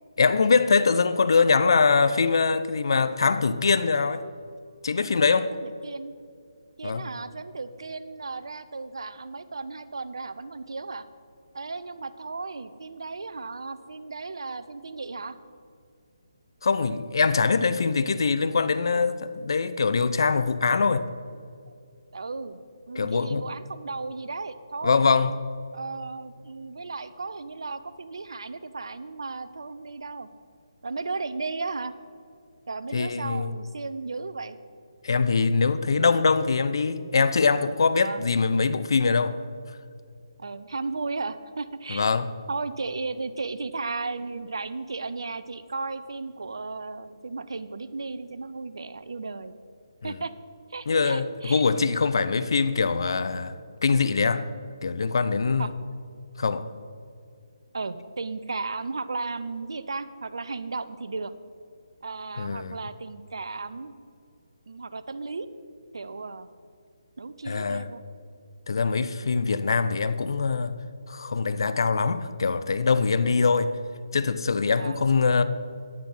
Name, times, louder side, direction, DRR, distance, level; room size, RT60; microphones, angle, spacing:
voice 1, 0.2-4.2 4.8-5.6 6.8-7.0 16.6-21.1 23.0-23.5 24.8-25.4 32.9-33.5 35.0-39.4 41.9-42.3 50.0-50.2 50.9-53.5 53.8-54.4 54.8-55.7 56.4-56.6 62.4-62.8 67.5-67.9 68.7-70.7 71.1-73.7 74.1-75.4, left 4 dB, 60° left, 0.6 m, -23 dB
voice 2, 5.5-6.1 6.8-11.0 11.5-15.4 22.1-22.6 22.9-25.0 25.7-30.3 30.8-31.9 32.7-34.6 38.0-38.2 40.4-42.0 42.5-49.5 50.0-50.3 50.7-51.6 55.6-55.7 57.7-61.3 62.0-63.9 64.7-65.5 65.9-66.5 67.2-68.0 68.8-69.0 74.8-75.0, right 3 dB, 70° right, 0.6 m, -35 dB
9.7 x 9.6 x 5.5 m
figure-of-eight pair, 150°, 3 cm